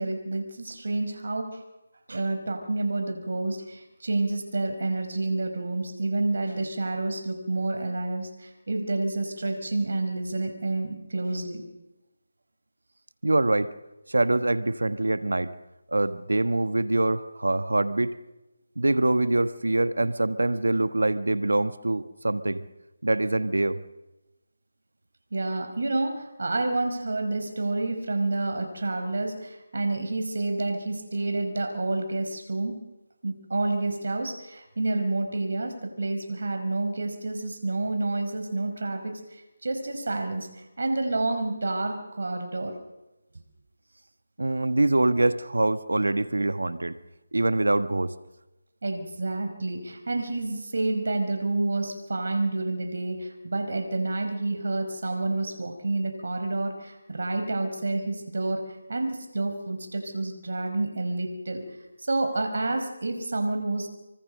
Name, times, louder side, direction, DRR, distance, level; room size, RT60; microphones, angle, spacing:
voice 1, 0.0-1.6 2.1-11.6 25.3-32.8 33.2-40.5 40.8-42.7 48.8-58.6 58.9-61.6 62.0-63.9, right 2 dB, 65° right, 7 dB, 5.1 m, -29 dB
voice 2, 13.2-13.7 14.1-15.5 15.9-18.1 18.8-22.6 23.0-23.8 44.4-47.0 47.3-48.1, right 2 dB, 90° right, 12 dB, 1.4 m, -24 dB
25.5 x 24.0 x 6.6 m, 1.0 s
figure-of-eight pair, 165°, 0 cm